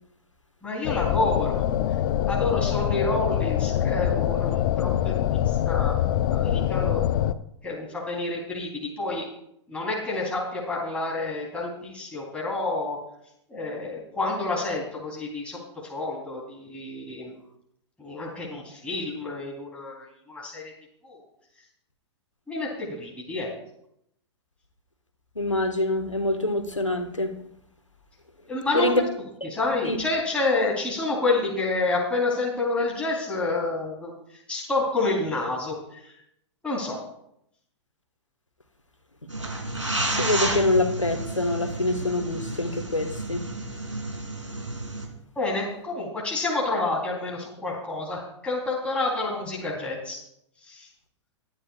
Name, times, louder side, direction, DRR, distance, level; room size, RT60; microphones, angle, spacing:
voice 1, 0.6-1.7 2.3-6.0 6.3-7.0 7.6-9.3 9.7-13.0 13.5-17.3 18.0-20.7 21.0-21.2 22.5-23.5 28.5-28.9 29.5-34.2 34.5-36.2 36.6-37.0 45.3-50.2 50.6-50.9, left 2 dB, 5° left, -4 dB, 3.5 m, -29 dB
sound 1, 0.8-7.3, left 11 dB, 45° left, 0.6 m, -24 dB
voice 2, 25.3-27.3 28.7-29.0 29.8-30.0 40.2-43.5, left 2 dB, 85° left, 6 dB, 1.5 m, -25 dB
sound 2, 39.3-45.1, right 2 dB, 90° right, 3.1 m, -31 dB
22.5 x 9.9 x 2.4 m, 0.77 s
figure-of-eight pair, 105°, 15 cm